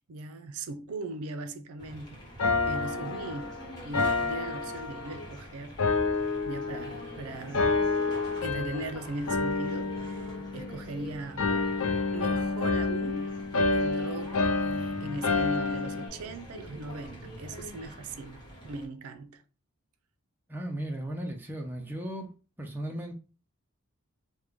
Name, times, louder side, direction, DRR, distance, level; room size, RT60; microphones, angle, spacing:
voice 1, 0.1-2.2 2.7-3.6 3.8-5.8 6.5-7.9 8.4-11.5 12.1-13.3 13.7-14.3 14.6-19.4, right 2 dB, 75° right, 0.4 m, -39 dB
sound 1, 1.8-18.9, equal, 20° left, 1.1 m, -45 dB
sound 2, 2.4-5.3 5.8-7.1 7.5-8.9 9.3-11.0 11.4-16.1, left 3 dB, 70° left, 0.5 m, -29 dB
voice 2, 20.5-22.3 22.6-23.1, right 1 dB, 10° right, 0.4 m, -36 dB
3.2 x 2.1 x 3.5 m
head